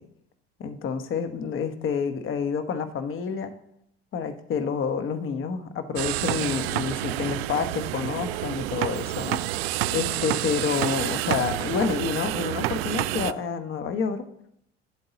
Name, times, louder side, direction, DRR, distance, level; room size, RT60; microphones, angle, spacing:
voice 1, 0.6-3.5 4.1-9.4 9.9-14.2, left 6 dB, 40° left, 10 dB, 1.1 m, -28 dB
sound 1, 6.0-13.3, right 16 dB, 65° right, 0.5 m, -29 dB
11.5 x 7.8 x 4.0 m, 0.75 s
figure-of-eight pair, 65°, 32 cm